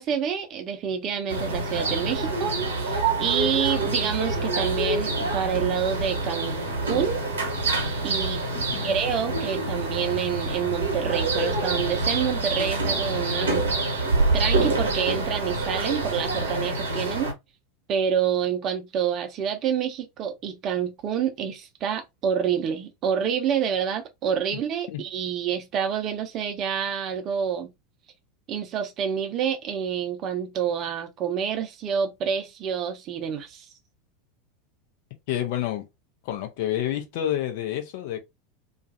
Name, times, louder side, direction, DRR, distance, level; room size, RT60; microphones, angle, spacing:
voice 1, 0.0-6.6 6.8-7.2 8.0-8.4 8.8-13.6 14.0-17.3 17.9-27.7 28.5-33.7, right 8 dB, 35° right, 0.6 m, -28 dB
sound 1, 1.3-17.3, right 2 dB, 70° right, 1.0 m, -26 dB
voice 2, 8.5-9.0 24.9-25.0 35.3-35.8 36.2-38.2, left 12 dB, 50° left, 0.6 m, -29 dB
2.4 x 2.3 x 2.5 m
figure-of-eight pair, 85°, 0 cm